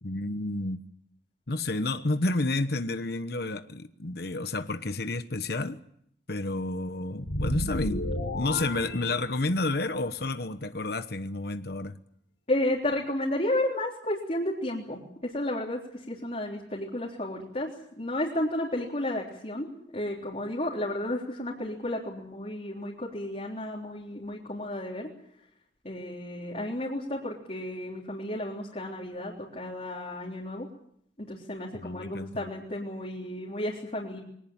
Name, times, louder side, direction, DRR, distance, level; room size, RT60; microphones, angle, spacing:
voice 1, 0.0-0.8 1.5-5.8 6.3-8.1 8.3-12.0 31.7-32.4, left 2 dB, 60° left, 10 dB, 1.1 m, -30 dB
sound 1, 7.2-9.8, left 1 dB, 75° left, 4.3 m, -32 dB
voice 2, 12.5-17.7 18.0-25.1 25.8-30.7 31.2-34.2, left 1 dB, 35° left, -3 dB, 3.7 m, -32 dB
23.5 x 18.5 x 8.8 m, 0.69 s
head